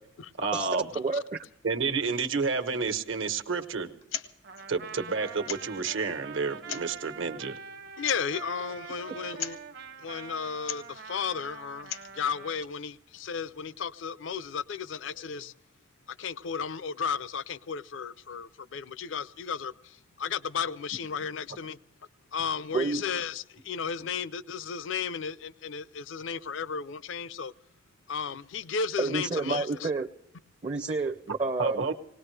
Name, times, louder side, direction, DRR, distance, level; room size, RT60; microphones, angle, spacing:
voice 1, 0.4-0.9 1.6-3.9 4.7-7.5 31.6-31.9, right 4 dB, 75° right, 1.3 m, -30 dB
voice 2, 0.9-1.5 22.7-23.0 29.0-30.1 30.6-31.8, right 3 dB, 35° right, 0.5 m, -29 dB
sound 1, 4.0-4.3 4.5-4.6 5.4-5.8 6.5-7.0 8.0-8.3 9.3-9.6 10.6-10.9 11.7-12.2, left 10 dB, 85° left, 1.0 m, -36 dB
Trumpet, 4.4-12.6, right 6 dB, 50° right, 0.9 m, -44 dB
voice 3, 8.0-9.6 10.0-15.5 16.2-21.8 22.3-27.5 28.1-29.9, left 6 dB, 70° left, 0.5 m, -34 dB
19.5 x 19.5 x 3.3 m
head